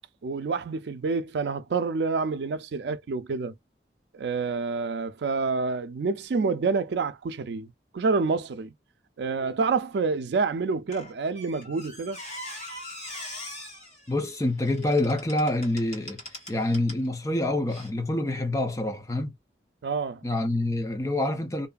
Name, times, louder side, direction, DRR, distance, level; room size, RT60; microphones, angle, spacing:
voice 1, 0.2-3.5 4.1-8.7 9.2-12.2 19.8-20.2, right 4 dB, 80° right, 0.4 m, -28 dB
Squeak, 10.9-17.1 17.7-17.9, left 1 dB, 40° left, 1.4 m, -42 dB
voice 2, 14.1-16.2 16.5-19.3 20.2-21.7, left 1 dB, 20° left, 0.5 m, -26 dB
2.6 x 2.4 x 2.2 m
head